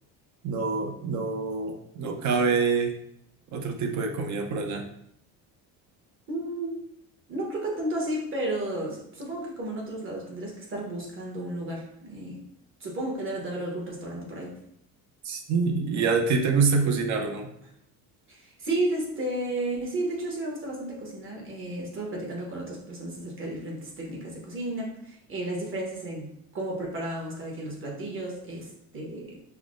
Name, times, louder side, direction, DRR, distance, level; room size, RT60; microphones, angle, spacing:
voice 1, 0.4-3.0 3.5-4.9 15.2-17.5, right 4 dB, 50° right, 4 dB, 0.6 m, -26 dB
voice 2, 6.3-6.8 7.3-12.4 12.8-14.6 18.3-29.4, right 1 dB, 35° right, -2 dB, 1.0 m, -33 dB
5.6 x 2.1 x 2.5 m, 0.73 s
cardioid pair, 145°, 38 cm